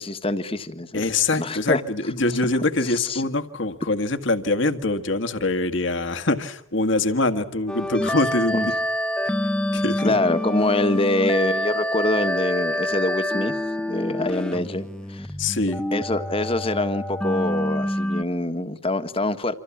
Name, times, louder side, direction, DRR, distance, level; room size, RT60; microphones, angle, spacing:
voice 1, 0.0-1.0 1.4-1.8 2.8-3.2 8.5-8.7 10.0-13.5 13.9-15.3 15.9-19.5, left 2 dB, 30° left, 1.6 m, -25 dB
voice 2, 0.9-8.7 9.3-9.4 9.7-10.1 15.4-15.8, left 2 dB, 65° left, 1.9 m, -24 dB
sound 1, 7.7-18.2, left 1 dB, 5° left, 1.2 m, -27 dB
28.5 x 26.5 x 7.4 m
head